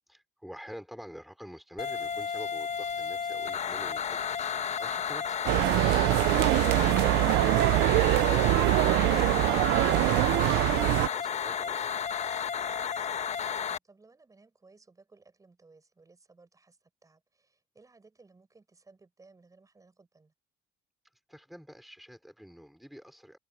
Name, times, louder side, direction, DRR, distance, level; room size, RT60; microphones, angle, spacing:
voice 1, 0.1-4.3 4.6-7.5 8.1-12.9 21.0-23.4, equal, ahead, 4.3 m, -47 dB
sound 1, 1.8-13.8, left 7 dB, 40° left, 1.1 m, -32 dB
sound 2, 5.5-11.1, right 21 dB, 85° right, 0.4 m, -23 dB
voice 2, 13.4-20.3, right 3 dB, 20° right, 6.8 m, -59 dB
cardioid pair, 110°, 17 cm